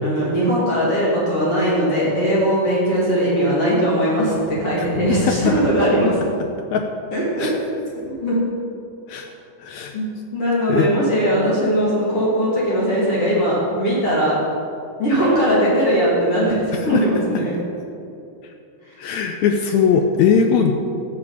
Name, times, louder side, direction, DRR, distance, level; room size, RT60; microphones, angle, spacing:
voice 1, 0.0-6.2 7.1-7.6 8.0-8.4 9.9-10.1 10.3-14.4 15.0-17.5 18.9-19.0, equal, 45° left, -7 dB, 3.4 m, -19 dB
voice 2, 9.6-9.9 10.7-10.9 16.9-17.0 19.0-20.7, left 7 dB, 80° left, 5 dB, 1.7 m, -19 dB
14.0 x 8.0 x 5.0 m, 2.6 s
omnidirectional pair, 3.9 m